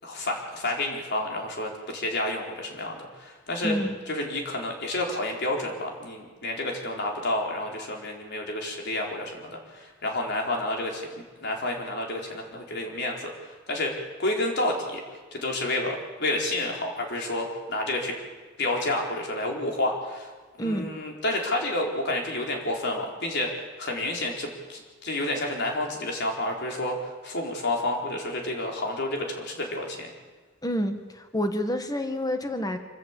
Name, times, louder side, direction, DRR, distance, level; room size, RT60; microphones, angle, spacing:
voice 1, 0.0-3.8 4.1-15.0 15.3-18.1 18.6-20.3 20.6-30.1, left 1 dB, 60° left, 1 dB, 4.4 m, -30 dB
voice 2, 3.6-3.9 20.6-20.8 30.6-32.8, equal, 20° left, 7 dB, 1.8 m, -28 dB
26.0 x 14.0 x 8.5 m, 1.4 s
head